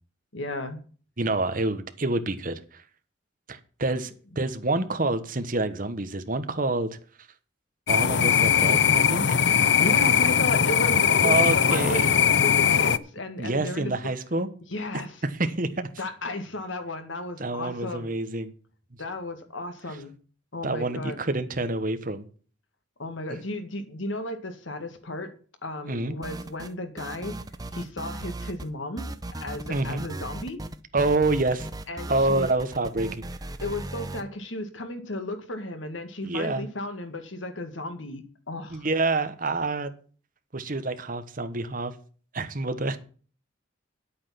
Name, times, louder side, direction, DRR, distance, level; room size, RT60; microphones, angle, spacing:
voice 1, 0.3-0.8 4.3-4.4 9.4-9.5 9.8-13.9 14.7-15.2 16.0-18.1 19.0-20.1 20.5-21.2 23.0-25.3 25.6-27.4 27.7-30.6 31.9-32.5 33.6-38.9, left 2 dB, 85° left, 8 dB, 1.9 m, -34 dB
voice 2, 1.2-2.8 3.5-6.9 7.9-9.4 11.2-12.1 13.4-14.5 15.4-15.9 17.4-18.5 20.6-22.3 25.8-26.2 29.7-30.0 30.9-31.7 32.1-33.2 36.2-36.7 38.7-39.9 40.5-41.9 42.3-43.0, right 2 dB, 45° right, 9 dB, 1.3 m, -27 dB
sound 1, 7.9-13.0, left 8 dB, 65° left, 0.6 m, -20 dB
sound 2, 26.2-26.7 27.0-28.7 29.0-34.2, right 1 dB, 20° right, 0.7 m, -37 dB
10.0 x 8.5 x 5.8 m, 0.41 s
head